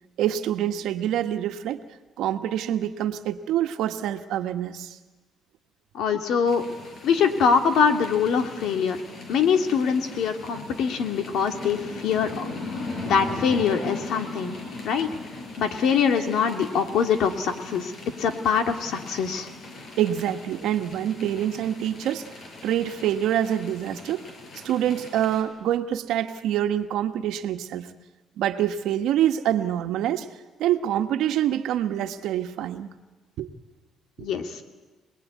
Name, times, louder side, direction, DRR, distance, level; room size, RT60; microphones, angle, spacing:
voice 1, 0.2-1.8 2.2-5.0 20.0-22.3 22.6-24.3 24.6-27.9 28.4-30.3 30.6-32.9 33.4-33.5 34.2-34.3, right 11 dB, 85° right, 7 dB, 1.5 m, -26 dB
voice 2, 5.9-6.6 7.0-9.0 9.3-12.4 12.8-14.6 14.8-15.1 15.6-17.9 18.2-19.5 34.2-34.6, left 6 dB, 70° left, 6 dB, 2.5 m, -23 dB
sound 1, 6.5-25.4, left 3 dB, 45° left, 5.6 m, -39 dB
26.5 x 20.5 x 9.6 m, 1.2 s
cardioid pair, 125°, 0 cm